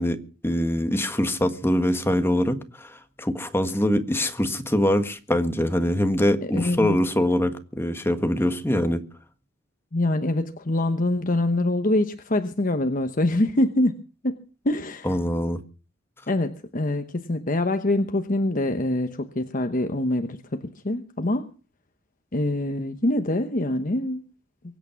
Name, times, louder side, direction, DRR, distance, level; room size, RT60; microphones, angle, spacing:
voice 1, 0.0-9.0 15.0-15.6, left 1 dB, 10° left, 1.6 m, -24 dB
voice 2, 6.5-7.0 9.9-13.9 14.2-14.4 14.6-15.2 16.3-21.5 22.3-24.2, left 1 dB, 40° left, 1.1 m, -24 dB
24.0 x 8.7 x 5.9 m
head